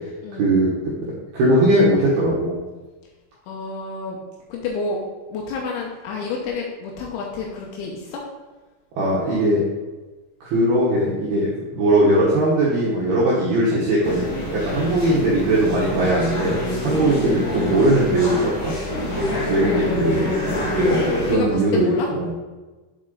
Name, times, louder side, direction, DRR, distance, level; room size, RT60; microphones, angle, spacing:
voice 1, 0.4-0.7 1.3-2.6 9.0-9.6 10.4-16.5 16.8-18.7 19.5-20.3 20.9-21.9 22.1-22.3, right 1 dB, 75° right, -6 dB, 2.3 m, -19 dB
voice 2, 3.5-4.2 4.5-5.0 5.3-8.2 17.0-17.2 19.7-20.6 21.2-22.1, left 4 dB, 80° left, -1 dB, 2.9 m, -30 dB
sound 1, 14.0-21.3, left 1 dB, 60° left, 1.1 m, -25 dB
8.3 x 4.5 x 3.8 m, 1.2 s
omnidirectional pair, 6.0 m